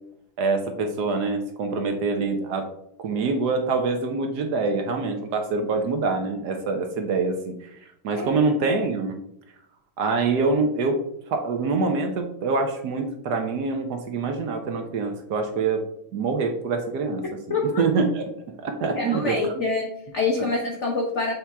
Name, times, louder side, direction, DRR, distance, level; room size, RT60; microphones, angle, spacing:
voice 1, 0.4-2.7 3.0-7.7 8.0-9.2 10.0-11.0 11.3-15.8 16.1-18.2 18.6-19.5, right 4 dB, 65° right, 5 dB, 1.1 m, -25 dB
voice 2, 17.5-17.9 19.0-21.3, left 3 dB, 50° left, 0 dB, 0.8 m, -26 dB
7.3 x 4.2 x 3.4 m, 0.73 s
omnidirectional pair, 2.4 m